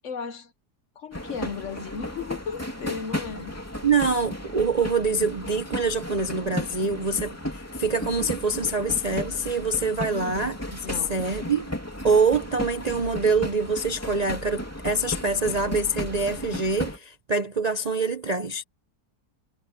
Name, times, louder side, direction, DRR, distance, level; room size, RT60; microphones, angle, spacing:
voice 1, 0.0-0.5 1.0-3.6 10.1-10.5 10.8-11.2, left 6 dB, 55° left, 1.1 m, -35 dB
sound 1, 1.1-17.0, left 1 dB, 10° left, 2.7 m, -35 dB
voice 2, 3.8-10.6 11.1-11.7 12.0-18.6, right 3 dB, 40° right, 0.5 m, -25 dB
omnidirectional pair, 1.7 m